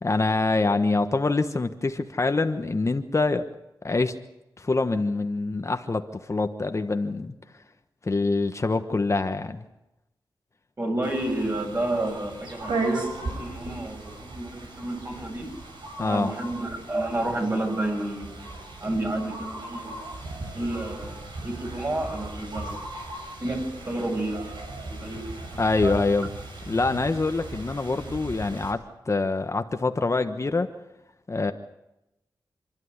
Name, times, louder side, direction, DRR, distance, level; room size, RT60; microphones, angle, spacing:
voice 1, 0.0-3.4 3.8-4.1 4.6-7.3 8.0-9.6 16.0-16.3 25.6-26.3 26.7-30.7 31.3-31.5, left 3 dB, 35° left, 7 dB, 1.3 m, -25 dB
voice 2, 10.8-15.5 16.0-18.4 18.8-20.0 20.5-22.8 23.4-25.2 25.5-26.0, right 1 dB, 35° right, 2 dB, 7.7 m, -30 dB
sound 1, 11.0-28.7, right 2 dB, 80° right, 6.0 m, -37 dB
28.0 x 12.5 x 9.7 m, 0.92 s
cardioid pair, 65°, 8 cm